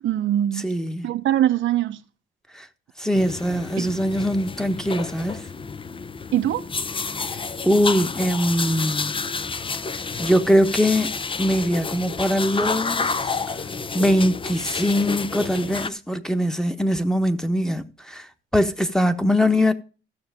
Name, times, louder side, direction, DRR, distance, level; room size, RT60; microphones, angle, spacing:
voice 1, 0.0-0.7 1.0-2.0 3.8-3.9 6.3-6.6, right 12 dB, 75° right, 0.9 m, -22 dB
voice 2, 0.5-1.1 2.5-2.7 3.0-5.5 7.6-9.2 10.2-11.1 11.4-13.4 13.9-19.7, equal, 5° left, 1.2 m, -22 dB
sound 1, 3.1-15.9, left 4 dB, 25° left, 0.7 m, -30 dB
15.0 x 6.3 x 3.6 m
cardioid pair, 90°, 20 cm